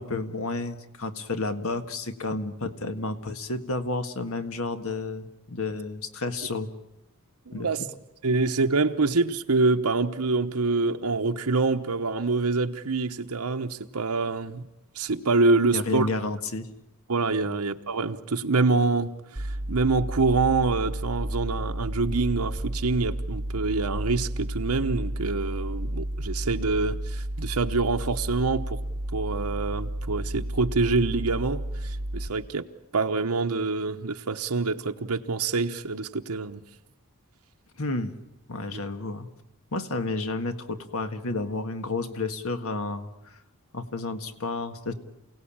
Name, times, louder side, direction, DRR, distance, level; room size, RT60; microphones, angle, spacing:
voice 1, 0.0-6.7 7.5-7.7 15.7-16.7 17.4-17.5 37.8-38.1 38.5-39.3 39.7-43.1 43.7-44.9, left 3 dB, 65° left, 9 dB, 1.7 m, -31 dB
voice 2, 7.5-7.8 8.2-14.7 14.9-16.1 17.1-28.8 29.1-32.7 32.9-36.6 38.7-38.8, right 3 dB, 85° right, 5 dB, 1.0 m, -26 dB
sound 1, 19.4-32.3, right 1 dB, 30° right, 1.0 m, -32 dB
28.5 x 17.5 x 8.8 m, 0.98 s
head